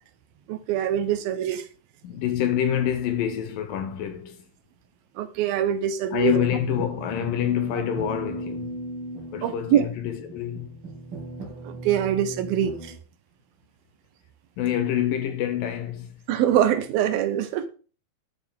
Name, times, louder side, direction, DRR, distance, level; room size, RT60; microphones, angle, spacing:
voice 1, 0.5-1.7 5.2-6.4 9.4-9.9 11.6-12.9 16.3-17.7, right 10 dB, 75° right, 2.6 m, -24 dB
voice 2, 2.0-4.4 6.1-8.8 9.3-10.7 14.6-16.1, left 10 dB, 75° left, 2.3 m, -26 dB
sound 1, 6.2-13.0, right 1 dB, 40° right, 2.3 m, -37 dB
12.0 x 7.5 x 3.6 m
omnidirectional pair, 4.6 m